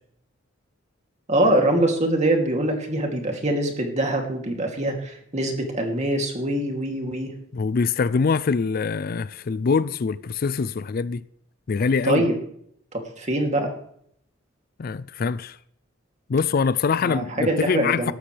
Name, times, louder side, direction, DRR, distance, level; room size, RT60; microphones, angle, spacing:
voice 1, 1.3-7.3 12.0-12.4 12.9-13.7 17.0-18.1, right 1 dB, 35° right, 2.8 m, -23 dB
voice 2, 7.5-11.2 11.7-12.2 14.8-15.6 16.3-18.1, left 5 dB, 45° left, 0.4 m, -24 dB
17.0 x 13.0 x 3.4 m
head